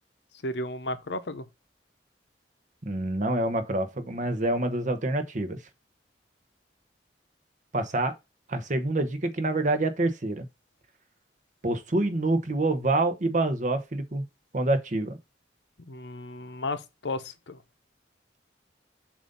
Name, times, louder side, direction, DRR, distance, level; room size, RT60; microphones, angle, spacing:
voice 1, 0.4-1.4 15.8-17.6, left 2 dB, 75° left, 0.8 m, -34 dB
voice 2, 2.8-5.6 7.7-8.1 8.5-10.5 11.6-14.2 14.5-15.2, right 2 dB, 45° right, 0.9 m, -26 dB
7.2 x 2.7 x 5.3 m
head